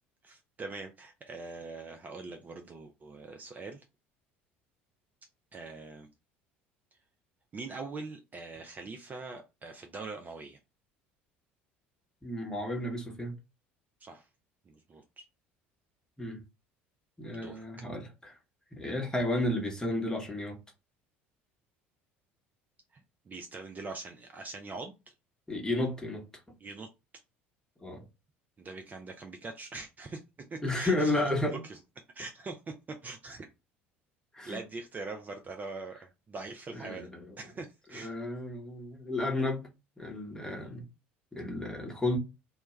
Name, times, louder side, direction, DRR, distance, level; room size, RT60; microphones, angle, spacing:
voice 1, 0.2-3.8 5.5-6.1 7.5-10.6 14.0-14.3 14.7-15.2 17.3-17.6 22.9-23.0 23.3-25.1 26.6-26.9 28.6-31.8 32.1-33.5 34.4-37.1 37.4-38.1, right 3 dB, 25° right, 0.4 m, -43 dB
voice 2, 12.2-13.4 16.2-16.4 17.2-18.3 18.7-20.6 25.5-26.3 27.8-28.0 30.6-31.6 34.3-34.6 36.7-37.3 37.9-39.7 40.0-40.9 41.3-42.2, left 1 dB, 10° left, 1.0 m, -32 dB
2.2 x 2.2 x 3.0 m
hypercardioid pair, 65°, 6 cm